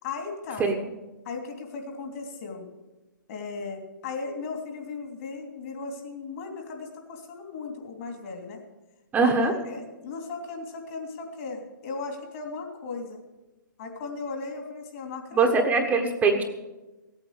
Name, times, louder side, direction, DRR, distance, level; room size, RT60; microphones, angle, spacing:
voice 1, 0.0-0.6 1.2-2.7 3.3-8.6 9.2-13.2 13.8-15.5 15.8-15.9, left 4 dB, 45° left, 2 dB, 3.0 m, -37 dB
voice 2, 9.1-9.5 15.3-16.4, right 4 dB, 15° right, 3 dB, 1.3 m, -22 dB
16.5 x 8.8 x 6.7 m, 1.1 s
hypercardioid pair, 130°, 11 cm